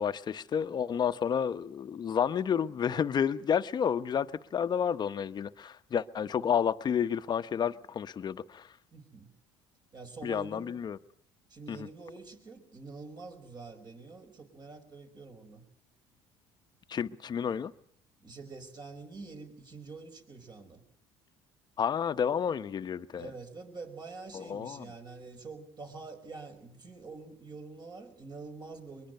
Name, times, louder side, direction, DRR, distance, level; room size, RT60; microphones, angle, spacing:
voice 1, 0.0-8.7 10.2-11.0 11.7-11.9 16.9-17.7 21.8-23.3 24.3-24.9, left 8 dB, 40° left, 0.9 m, -30 dB
voice 2, 8.9-9.3 9.9-10.8 11.5-15.6 18.2-20.8 23.1-29.1, right 3 dB, 40° right, 5.2 m, -46 dB
23.0 x 22.0 x 6.7 m
supercardioid pair, 95°, 11 cm